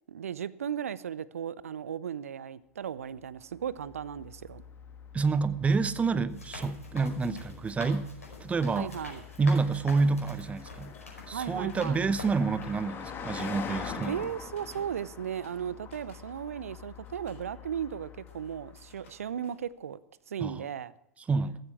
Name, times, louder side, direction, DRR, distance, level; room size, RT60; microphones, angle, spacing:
voice 1, 0.1-4.6 8.8-9.2 11.3-12.0 14.0-20.0 20.3-20.9, right 8 dB, 70° right, 0.6 m, -36 dB
Car passing by, 3.3-19.1, left 7 dB, 25° left, 1.8 m, -45 dB
voice 2, 5.1-8.1 8.4-9.0 9.4-10.9 11.3-14.3 20.4-20.6 21.3-21.6, right 4 dB, 15° right, 0.9 m, -28 dB
sound 1, 6.3-12.8 13.4-13.5 14.0-14.4 14.7-14.9, left 2 dB, 80° left, 5.1 m, -46 dB
sound 2, 8.9-13.5 14.5-15.0 15.3-16.5 16.7-20.3, left 4 dB, 65° left, 3.6 m, -59 dB
14.5 x 14.5 x 4.9 m
figure-of-eight pair, 90°, 8 cm